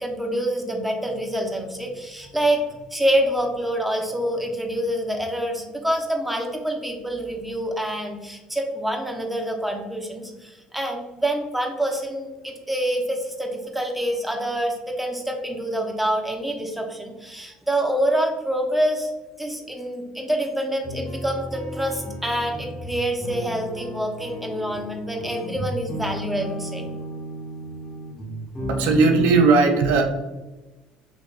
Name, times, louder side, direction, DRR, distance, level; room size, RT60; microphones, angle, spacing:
voice 1, 0.0-19.1 19.4-26.9, right 1 dB, 5° right, 1 dB, 0.9 m, -26 dB
sound 1, 20.8-29.5, equal, 25° left, 1.4 m, -33 dB
voice 2, 28.7-30.0, right 4 dB, 70° right, 4 dB, 0.5 m, -17 dB
4.1 x 3.2 x 2.4 m, 1.1 s
hypercardioid pair, 65°, 3 cm